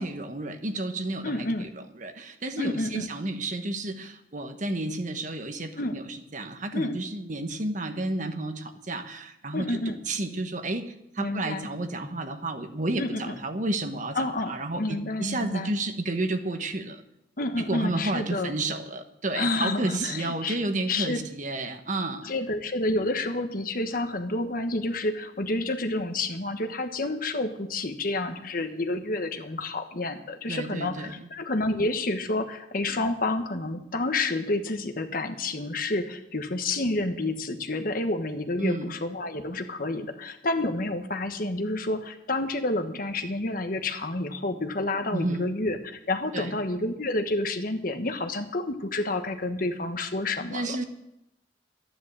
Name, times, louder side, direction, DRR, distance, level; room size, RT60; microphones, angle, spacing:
voice 1, 0.0-1.7 2.0-10.8 11.1-14.2 14.5-17.0 17.6-22.3 30.5-31.3 38.6-38.9 45.1-45.5 46.3-46.6 50.5-50.8, right 2 dB, 45° right, 7 dB, 1.2 m, -31 dB
voice 2, 1.2-1.7 2.6-3.1 5.8-6.0 6.7-7.0 9.5-10.0 11.2-11.7 13.0-13.4 14.1-15.7 17.4-18.5 19.3-20.6 20.9-21.2 22.2-50.8, left 2 dB, 55° left, 7 dB, 1.3 m, -29 dB
12.5 x 10.5 x 7.5 m, 0.85 s
head